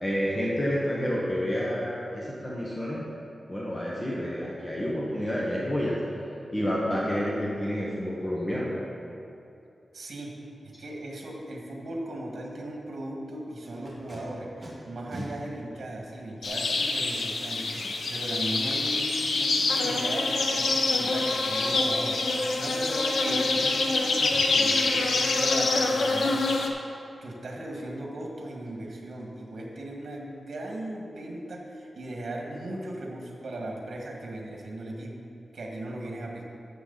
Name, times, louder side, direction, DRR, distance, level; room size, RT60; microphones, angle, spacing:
voice 1, 0.0-3.0 3.5-6.0 6.5-8.7, equal, 20° left, -5 dB, 1.3 m, -29 dB
voice 2, 9.9-10.4 10.8-26.7 27.2-35.2 35.5-36.4, right 1 dB, 65° right, -1 dB, 1.8 m, -37 dB
Packing tape duct tape, 13.6-14.2 14.6-14.7 15.1-15.3 16.1-16.2 19.5-19.9 20.4-20.5 20.9-21.2 21.6-22.0 22.6-23.2 23.4-23.9 24.3-24.4 24.7-25.1 28.1-28.2 28.5-28.7 29.1-29.2 29.5-29.7 30.0-30.1, equal, 15° right, 2.6 m, -45 dB
sound 1, 16.4-26.7, left 3 dB, 80° left, 0.9 m, -26 dB
12.5 x 7.5 x 4.1 m, 2.6 s
wide cardioid pair, 140°, 0 cm